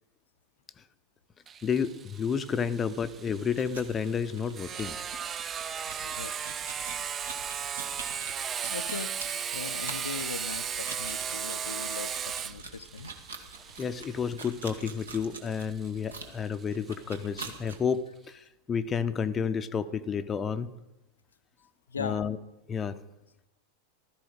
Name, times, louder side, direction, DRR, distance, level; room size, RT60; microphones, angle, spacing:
Sawing, 1.5-16.9, right 7 dB, 25° right, 0.5 m, -36 dB
voice 1, 1.6-5.0 13.8-20.7 22.0-22.4 22.7-23.0, left 6 dB, 20° left, 11 dB, 0.6 m, -31 dB
sound 1, 3.5-17.8, right 4 dB, 70° right, 1.9 m, -45 dB
voice 2, 6.0-6.3 8.7-9.2 9.5-13.1 21.9-22.2, left 6 dB, 70° left, 11 dB, 0.6 m, -39 dB
15.5 x 14.0 x 4.9 m, 0.97 s
figure-of-eight pair, 90°, 0 cm